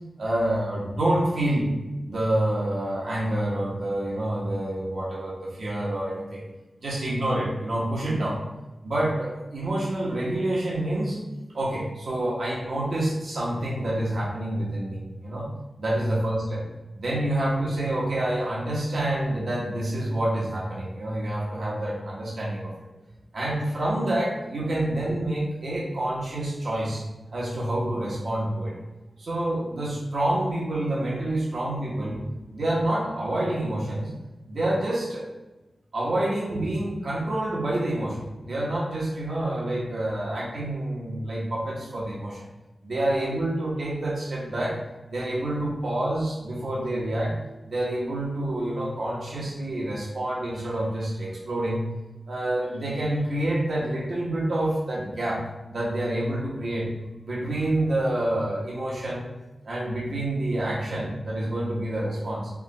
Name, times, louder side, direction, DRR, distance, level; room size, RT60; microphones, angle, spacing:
voice 1, 0.2-1.7 2.1-6.4 6.8-8.4 8.8-11.2 11.5-15.5 15.8-16.6 16.9-22.7 23.3-27.0 27.3-28.7 29.2-32.2 32.5-34.1 34.5-35.3 35.9-42.4 42.8-44.8 45.1-47.4 47.7-51.8 52.3-55.4 55.7-56.9 57.2-59.3 59.6-62.5, right 1 dB, 65° right, -5 dB, 1.1 m, -27 dB
4.8 x 2.4 x 4.1 m, 1.1 s
wide cardioid pair, 95°, 0 cm